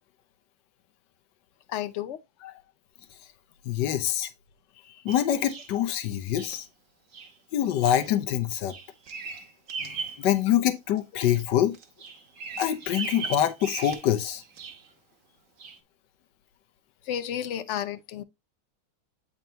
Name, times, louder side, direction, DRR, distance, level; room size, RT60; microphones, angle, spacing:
voice 1, 1.7-2.6 4.8-5.0 9.8-10.0 17.1-18.2, left 10 dB, 70° left, 0.7 m, -33 dB
voice 2, 3.6-4.3 5.0-6.7 7.5-8.7 10.2-11.7 12.6-14.4, left 11 dB, 90° left, 1.5 m, -25 dB
Bird vocalization bird call bird song, 5.1-5.7 6.3-6.6 7.1-7.3 7.8-8.1 8.4-10.2 10.7-11.4 11.7-14.9 15.6-15.8, right 5 dB, 55° right, 1.3 m, -38 dB
9.0 x 4.4 x 2.7 m
omnidirectional pair, 1.8 m